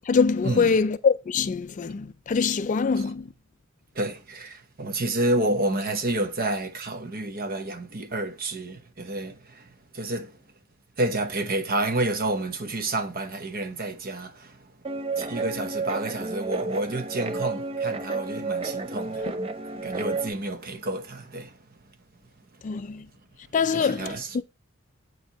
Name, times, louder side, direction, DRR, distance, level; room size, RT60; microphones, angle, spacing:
voice 1, 0.1-3.3 22.6-23.1 23.5-24.4, left 5 dB, 35° left, 0.3 m, -24 dB
voice 2, 3.9-10.4 11.0-14.7 15.2-21.6 23.7-24.4, right 2 dB, 45° right, 0.9 m, -30 dB
Guitar, 14.8-20.3, right 3 dB, 25° right, 0.6 m, -31 dB
8.1 x 4.6 x 4.0 m
head